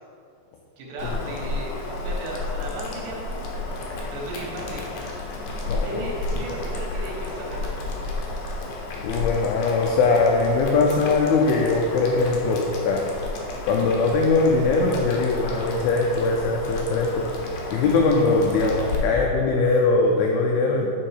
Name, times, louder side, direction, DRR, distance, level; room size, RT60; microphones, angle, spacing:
voice 1, 0.8-3.5 4.1-4.9 5.8-7.8, right 1 dB, 75° right, -3 dB, 3.4 m, -35 dB
Boiling, 1.0-19.0, left 2 dB, 75° left, 2.0 m, -32 dB
voice 2, 5.7-6.0 9.0-13.1 13.7-17.3 17.7-20.9, left 3 dB, 90° left, 0 dB, 2.1 m, -21 dB
7.2 x 5.4 x 4.8 m, 2.5 s
omnidirectional pair, 5.0 m